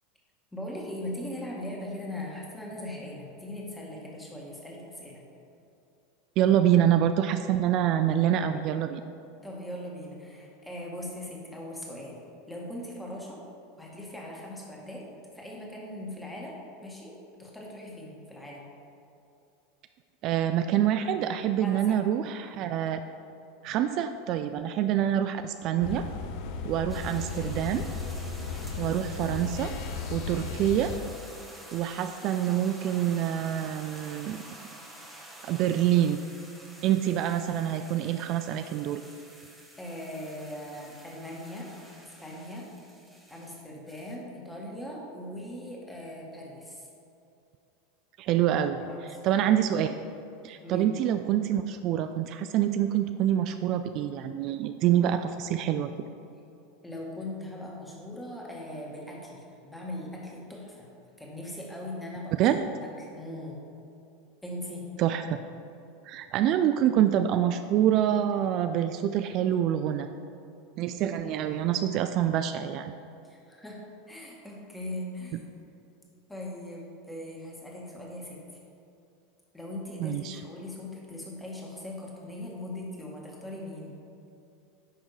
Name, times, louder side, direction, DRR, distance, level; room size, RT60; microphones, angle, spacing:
voice 1, 0.5-5.2 9.4-12.2 12.5-13.4 13.8-15.0 15.3-16.6 16.8-18.7 21.6-22.0 39.8-41.7 42.0-42.7 43.3-46.9 48.9-49.2 50.6-50.9 56.8-60.9 61.2-63.6 64.4-64.9 71.2-71.6 73.2-75.4 76.3-78.4 79.5-84.0, left 1 dB, 5° left, -3 dB, 1.9 m, -40 dB
voice 2, 6.4-9.0 20.2-23.0 23.6-26.0 26.6-27.8 28.8-29.7 30.1-30.9 31.7-34.4 35.4-36.2 36.8-39.0 48.2-48.8 49.2-49.9 50.4-55.9 62.4-62.6 65.0-65.4 66.1-70.1 70.8-72.9 80.0-80.4, right 10 dB, 50° right, 9 dB, 0.3 m, -26 dB
sound 1, 25.8-31.0, left 4 dB, 60° left, 0.6 m, -35 dB
sound 2, 26.9-44.2, right 1 dB, 10° right, 1.4 m, -49 dB
10.5 x 3.5 x 4.9 m, 2.7 s
hypercardioid pair, 90°, 0 cm